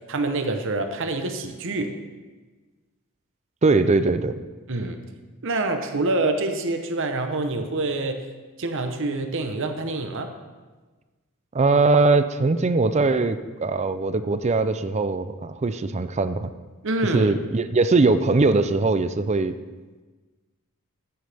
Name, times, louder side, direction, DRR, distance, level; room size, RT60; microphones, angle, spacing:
voice 1, 0.1-1.9 4.7-5.0 5.4-8.2 8.6-10.3 16.8-17.3, right 2 dB, 60° right, 6 dB, 0.9 m, -26 dB
voice 2, 3.6-4.3 11.5-16.5 17.1-19.6, right 3 dB, 30° right, 11 dB, 0.4 m, -21 dB
13.5 x 9.5 x 3.5 m, 1.3 s
head